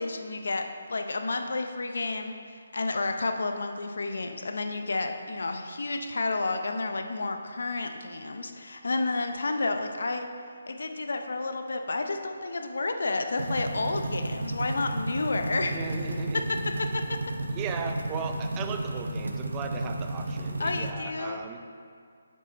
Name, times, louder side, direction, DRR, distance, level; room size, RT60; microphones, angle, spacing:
voice 1, 0.0-10.3 10.7-15.8 16.3-16.4 16.9-17.2 20.6-21.4, left 3 dB, 70° left, 6 dB, 0.6 m, -31 dB
sound 1, 13.4-20.9, right 1 dB, 85° right, 0.6 m, -33 dB
voice 2, 15.7-16.4 17.5-21.6, right 5 dB, 20° right, 4 dB, 0.5 m, -36 dB
6.5 x 5.4 x 4.0 m, 2.2 s
hypercardioid pair, 160°, 0 cm